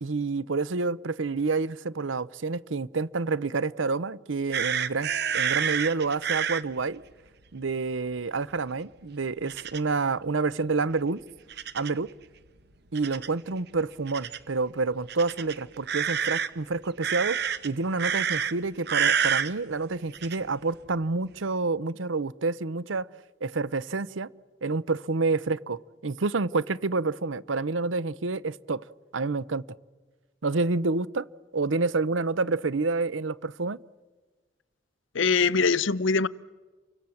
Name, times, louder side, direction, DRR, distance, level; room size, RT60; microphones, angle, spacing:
voice 1, 0.0-7.0 7.5-11.2 11.7-12.1 12.9-17.4 17.6-23.1 23.4-24.3 24.6-28.8 29.1-29.6 30.4-31.3 31.5-33.8, right 3 dB, 85° right, 0.8 m, -28 dB
sound 1, 4.5-6.6 9.5-9.8 11.5-12.0 12.9-13.3 14.1-14.4 15.1-16.5 17.0-17.7 18.0-18.5 18.9-19.5 20.1-20.4, right 8 dB, 60° right, 1.2 m, -28 dB
voice 2, 35.1-36.3, left 4 dB, 85° left, 0.7 m, -22 dB
30.0 x 24.5 x 7.2 m
head